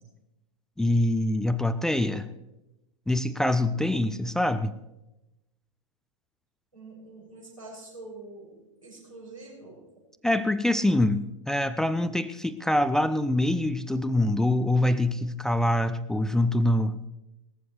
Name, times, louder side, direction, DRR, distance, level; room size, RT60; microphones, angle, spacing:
voice 1, 0.8-2.3 3.1-4.8 10.2-17.0, left 1 dB, 5° left, 13 dB, 0.3 m, -25 dB
voice 2, 6.7-9.8, right 2 dB, 90° right, -6 dB, 6.7 m, -45 dB
18.5 x 14.5 x 3.2 m, 0.96 s
figure-of-eight pair, 95°, 17 cm